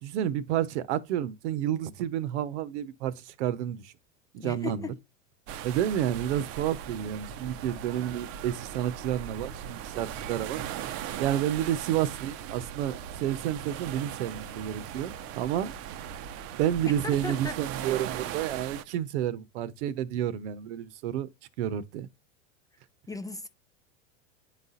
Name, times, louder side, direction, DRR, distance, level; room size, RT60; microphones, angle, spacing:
voice 1, 0.0-3.9 4.3-4.9 5.6-10.6 11.2-15.7 16.6-21.3 21.6-22.1, right 11 dB, 70° right, 0.9 m, -30 dB
voice 2, 4.4-5.0 17.0-17.6 23.1-23.5, left 4 dB, 10° left, 0.5 m, -36 dB
sound 1, 5.5-18.8, right 9 dB, 40° right, 0.6 m, -39 dB
10.0 x 4.1 x 2.5 m
supercardioid pair, 120°, 36 cm